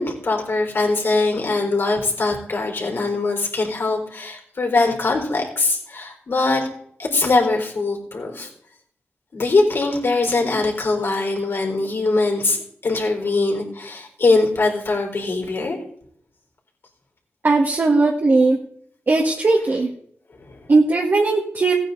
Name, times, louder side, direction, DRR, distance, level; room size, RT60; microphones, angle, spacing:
voice 1, 0.0-6.7 7.0-8.5 9.3-15.8 20.4-20.6, left 3 dB, 60° left, 1 dB, 4.0 m, -22 dB
voice 2, 17.4-18.6 19.1-19.9 20.7-21.7, right 3 dB, 50° right, -1 dB, 1.8 m, -18 dB
16.0 x 9.1 x 4.0 m, 0.64 s
cardioid pair, 70°, 5 cm